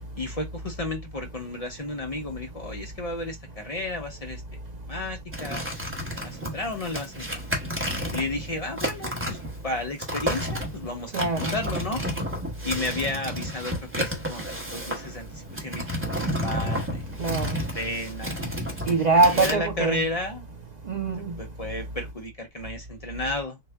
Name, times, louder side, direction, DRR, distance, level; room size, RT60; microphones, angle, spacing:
voice 1, 0.2-4.6 4.9-5.6 6.1-7.4 8.1-12.0 12.6-15.8 16.4-17.0 17.5-18.4 19.3-20.5 21.4-23.6, left 2 dB, 45° left, 0.6 m, -33 dB
sound 1, 5.3-19.5, equal, 15° right, 0.9 m, -31 dB
voice 2, 11.1-11.6 17.2-17.6 18.9-20.0 20.9-21.3, right 3 dB, 55° right, 0.5 m, -23 dB
3.7 x 2.0 x 3.3 m
omnidirectional pair, 1.1 m